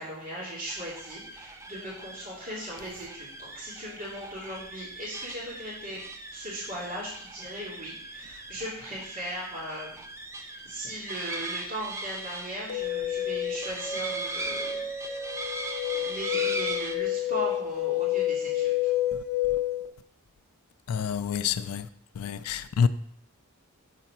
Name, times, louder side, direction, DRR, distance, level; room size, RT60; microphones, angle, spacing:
voice 1, 0.0-6.0 6.3-10.0 10.4-14.9 16.0-18.7, equal, 40° right, 2.5 m, -38 dB
sound 1, 0.7-17.0, right 2 dB, 15° right, 0.4 m, -39 dB
sound 2, 12.7-19.9, left 11 dB, 45° left, 0.8 m, -29 dB
voice 2, 20.9-21.9 22.2-22.9, left 7 dB, 85° left, 0.4 m, -27 dB
6.7 x 4.1 x 5.9 m
head